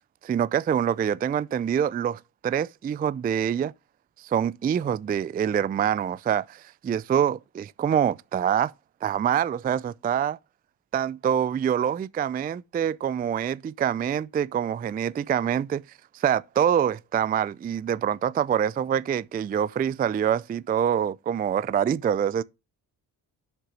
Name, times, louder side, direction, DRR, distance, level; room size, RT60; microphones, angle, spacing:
voice 1, 0.2-3.7 4.2-8.7 9.0-10.4 10.9-15.8 16.1-22.4, right 9 dB, 20° right, 0.3 m, -25 dB
7.5 x 6.6 x 3.2 m
supercardioid pair, 65°, 47 cm